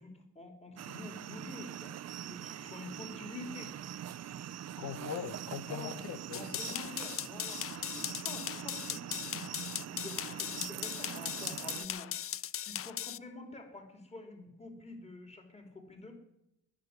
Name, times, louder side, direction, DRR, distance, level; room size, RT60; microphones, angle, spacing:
voice 1, 0.0-3.8 4.8-4.9 5.6-6.0 6.3-16.1, left 2 dB, 20° left, 4 dB, 3.4 m, -48 dB
sound 1, 0.8-11.9, right 10 dB, 60° right, 0.7 m, -43 dB
voice 2, 4.8-6.9, left 7 dB, 80° left, 11 dB, 1.4 m, -41 dB
sound 2, 6.3-13.2, left 11 dB, 50° left, 0.5 m, -38 dB
20.0 x 6.7 x 9.7 m, 0.85 s
cardioid pair, 90°, 30 cm